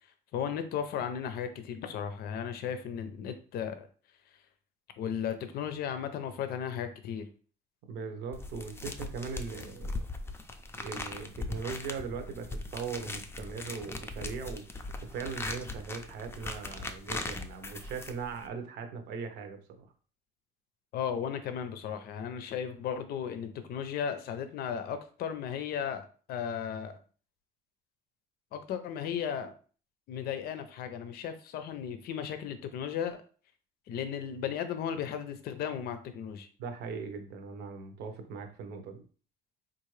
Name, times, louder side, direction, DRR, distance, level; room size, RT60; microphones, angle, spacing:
voice 1, 0.3-3.9 5.0-7.3 20.9-27.0 28.5-29.5 30.1-33.2 33.9-36.5, left 8 dB, 65° left, 9 dB, 0.5 m, -35 dB
voice 2, 7.9-10.1 10.8-14.6 15.1-19.9 36.6-39.0, right 5 dB, 80° right, 6 dB, 0.8 m, -39 dB
sound 1, 8.3-18.5, left 2 dB, 15° left, 0.4 m, -40 dB
3.6 x 2.5 x 3.2 m, 0.40 s
cardioid pair, 110°, 17 cm